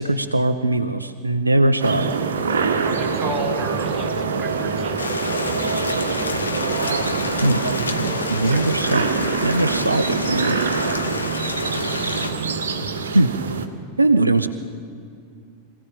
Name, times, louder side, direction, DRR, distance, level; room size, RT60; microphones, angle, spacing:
voice 1, 0.0-2.1 7.4-7.6 8.3-9.1 9.4-10.6 13.1-13.3 14.0-14.5, right 2 dB, 80° right, 10 dB, 0.7 m, -20 dB
sound 1, 1.8-13.7, right 5 dB, 65° right, 1.6 m, -25 dB
voice 2, 2.8-5.5 8.4-8.9, right 2 dB, 15° right, -2 dB, 5.1 m, -32 dB
Rain, 5.0-12.3, left 4 dB, 75° left, 1.3 m, -29 dB
24.5 x 16.0 x 8.7 m, 2.4 s
figure-of-eight pair, 90°, 0 cm